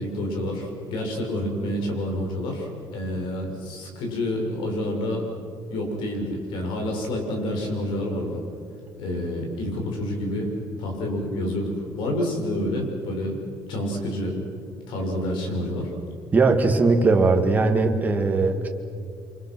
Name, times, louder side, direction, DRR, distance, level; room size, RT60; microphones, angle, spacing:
voice 1, 0.0-5.2 5.7-8.4 9.0-13.4 13.7-14.4 14.9-15.9, left 1 dB, 75° left, 2 dB, 6.5 m, -28 dB
voice 2, 16.3-18.7, right 3 dB, 20° right, 4 dB, 2.1 m, -19 dB
29.0 x 25.5 x 6.3 m, 2.5 s
cardioid pair, 160°, 8 cm